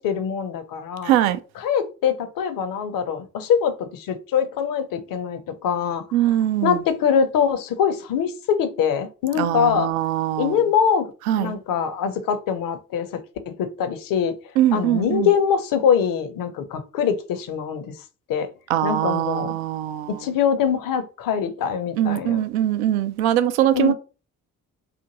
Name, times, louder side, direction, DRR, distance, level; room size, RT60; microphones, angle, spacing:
voice 1, 0.0-1.1 1.6-6.3 6.6-9.9 10.4-11.1 11.4-13.2 13.5-14.3 14.7-17.9 18.3-18.5 18.8-19.5 20.2-22.4 23.7-23.9, left 7 dB, 50° left, 0.7 m, -23 dB
voice 2, 1.0-1.4 6.1-6.8 9.4-10.6 11.3-11.5 14.6-15.3 18.7-20.2 22.0-23.9, right 12 dB, 75° right, 0.5 m, -22 dB
2.6 x 2.5 x 2.8 m
figure-of-eight pair, 40°, 43 cm